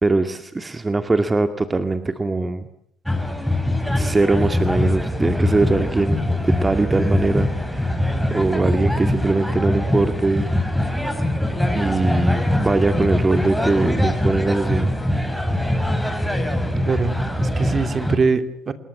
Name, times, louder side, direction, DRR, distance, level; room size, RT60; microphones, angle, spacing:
voice 1, 0.0-2.7 3.9-7.5 7.8-8.0 8.3-10.5 11.1-11.3 11.7-14.9, right 3 dB, 20° right, 9 dB, 2.1 m, -21 dB
sound 1, 3.1-18.2, left 1 dB, ahead, 6.0 m, -22 dB
voice 2, 16.8-18.7, right 4 dB, 40° right, 9 dB, 2.8 m, -23 dB
27.0 x 21.5 x 9.4 m, 0.71 s
hypercardioid pair, 55°, 0 cm